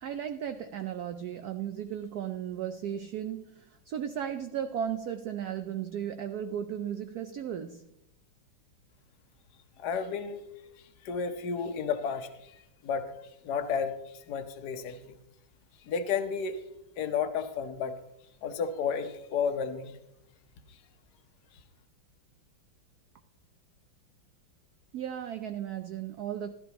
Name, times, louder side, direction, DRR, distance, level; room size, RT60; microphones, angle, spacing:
voice 1, 0.0-7.9 24.9-26.5, right 9 dB, 80° right, 9 dB, 0.8 m, -35 dB
voice 2, 9.8-10.4 11.0-13.1 13.4-13.9 14.3-15.0 15.9-16.6 17.0-18.0 18.4-20.0, left 6 dB, 60° left, 7 dB, 1.4 m, -32 dB
15.5 x 12.5 x 2.9 m, 0.82 s
omnidirectional pair, 2.3 m